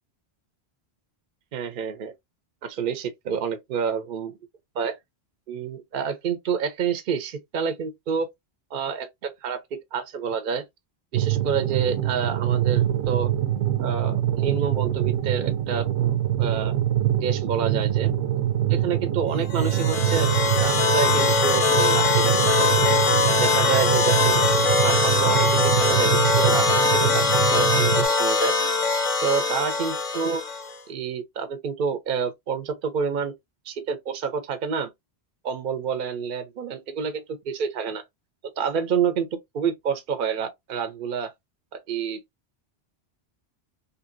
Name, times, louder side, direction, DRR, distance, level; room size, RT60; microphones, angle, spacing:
voice 1, 1.5-2.1 2.6-4.3 4.7-5.0 5.5-8.3 8.7-9.6 9.9-10.6 11.1-13.3 13.8-15.9 16.4-16.7 17.2-18.1 18.7-22.8 23.3-24.4 24.7-26.8 27.1-28.5 29.2-30.4 30.9-33.3 33.7-34.9 35.4-38.0 38.6-39.3 39.5-41.3 41.9-42.2, right 6 dB, 60° right, 0.7 m, -28 dB
sound 1, 11.1-28.1, right 12 dB, 85° right, 0.9 m, -24 dB
sound 2, 19.5-30.7, left 4 dB, 40° left, 0.5 m, -22 dB
2.8 x 2.6 x 2.5 m
omnidirectional pair, 1.1 m